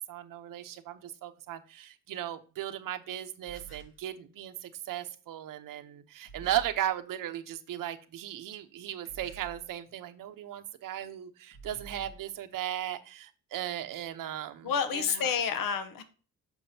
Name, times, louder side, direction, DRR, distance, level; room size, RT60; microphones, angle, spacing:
voice 1, 0.0-15.3, right 12 dB, 75° right, 9 dB, 0.8 m, -37 dB
sound 1, 3.4-4.0 6.2-6.8 9.0-9.7 11.5-12.2, right 4 dB, 35° left, 2.1 m, -49 dB
voice 2, 14.6-16.0, left 7 dB, 90° left, 9 dB, 1.0 m, -29 dB
7.2 x 6.1 x 2.7 m, 0.39 s
wide cardioid pair, 175°, 33 cm